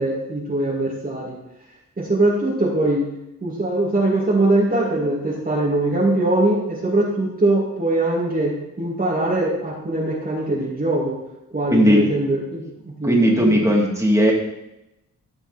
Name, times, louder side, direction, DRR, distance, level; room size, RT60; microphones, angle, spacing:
voice 1, 0.0-1.3 2.0-3.1 3.4-11.2 11.5-13.7, right 2 dB, 25° right, -5 dB, 2.3 m, -22 dB
voice 2, 11.7-12.0 13.0-14.3, equal, 10° right, -3 dB, 3.0 m, -16 dB
14.5 x 5.7 x 4.3 m, 0.90 s
cardioid pair, 80°, 34 cm